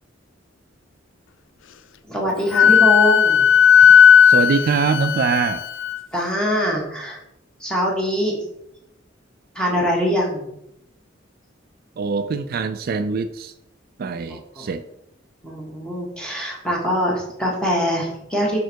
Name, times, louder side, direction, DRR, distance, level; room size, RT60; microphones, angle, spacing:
voice 1, 2.1-3.5 6.1-7.2 7.6-8.4 9.5-10.5 14.3-14.7 15.4-18.6, equal, 5° left, -3 dB, 1.6 m, -23 dB
Wind instrument woodwind instrument, 2.5-6.0, left 8 dB, 75° left, 0.4 m, -13 dB
voice 2, 3.8-5.6 12.0-13.5 14.0-14.8, right 5 dB, 50° right, 9 dB, 0.3 m, -23 dB
5.4 x 4.5 x 4.5 m, 0.80 s
head